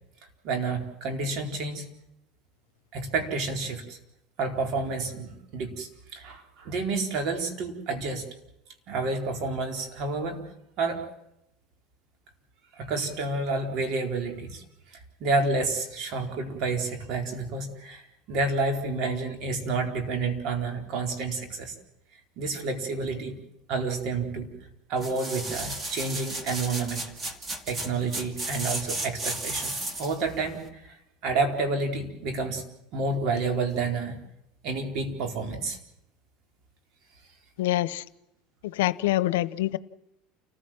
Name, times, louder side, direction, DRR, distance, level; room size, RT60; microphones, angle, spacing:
voice 1, 0.4-1.9 2.9-4.0 4.4-8.2 8.9-10.4 10.8-11.1 12.8-14.6 15.2-21.7 22.4-23.4 23.7-24.5 24.9-27.0 27.7-30.8 31.2-32.6 32.9-34.2 34.6-35.8, right 3 dB, 55° right, 4 dB, 4.3 m, -29 dB
sound 1, 25.0-30.2 30.7-30.8, right 2 dB, 25° right, 2.6 m, -34 dB
voice 2, 37.6-38.0 38.7-39.8, left 16 dB, 90° left, 16 dB, 0.8 m, -25 dB
29.0 x 15.5 x 7.5 m, 0.83 s
supercardioid pair, 115°, 0 cm